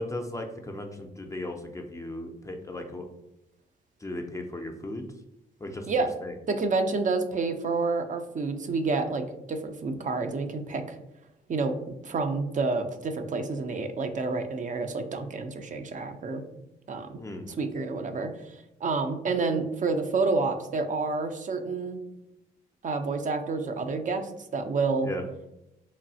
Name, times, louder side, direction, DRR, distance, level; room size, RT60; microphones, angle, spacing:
voice 1, 0.0-3.1 4.0-5.0 5.6-5.9 6.2-6.3 17.2-17.5 25.0-25.2, left 1 dB, 15° left, 3 dB, 0.4 m, -36 dB
voice 2, 6.5-11.0 11.5-16.4 16.9-17.2 17.5-22.0 22.8-25.1, right 3 dB, 40° right, 7 dB, 0.4 m, -29 dB
3.1 x 2.3 x 2.6 m, 0.89 s
supercardioid pair, 55°, 20 cm